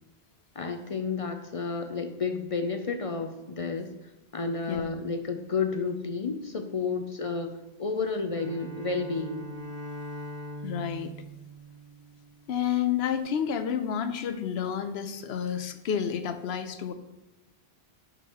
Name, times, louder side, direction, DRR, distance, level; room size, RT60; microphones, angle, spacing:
voice 1, 0.6-3.9 4.3-9.4, left 4 dB, 45° left, 6 dB, 0.4 m, -31 dB
Bowed string instrument, 8.3-12.5, equal, 35° right, 1.1 m, -41 dB
voice 2, 10.6-11.1 12.5-16.9, left 8 dB, 75° left, 10 dB, 0.8 m, -30 dB
10.5 x 5.3 x 2.9 m, 0.97 s
omnidirectional pair, 1.1 m